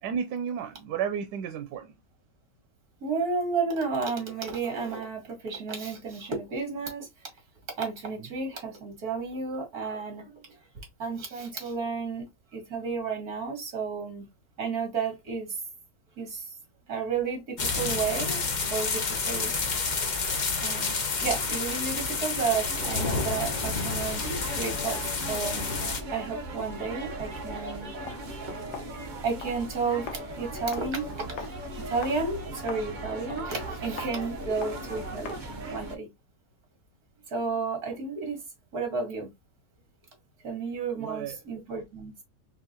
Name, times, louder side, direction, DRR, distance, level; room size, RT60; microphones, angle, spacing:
voice 1, 0.0-1.9 40.9-41.4, right 7 dB, 90° right, 1.2 m, -32 dB
voice 2, 3.0-7.1 7.8-10.4 11.0-12.3 12.5-14.3 14.6-15.5 16.2-16.5 16.9-18.4 18.7-19.5 20.6-24.3 24.6-25.7 26.1-27.9 28.6-28.7 29.2-31.5 31.9-35.4 35.7-36.1 37.3-38.4 38.7-39.3 40.4-42.2, right 4 dB, 60° right, 2.4 m, -32 dB
sound 1, 17.6-26.0, left 4 dB, 35° left, 0.7 m, -29 dB
sound 2, 22.6-36.0, right 2 dB, 35° right, 1.0 m, -38 dB
Walk footsteps, 28.0-35.6, left 6 dB, 75° left, 1.4 m, -45 dB
4.5 x 3.7 x 2.8 m
omnidirectional pair, 1.8 m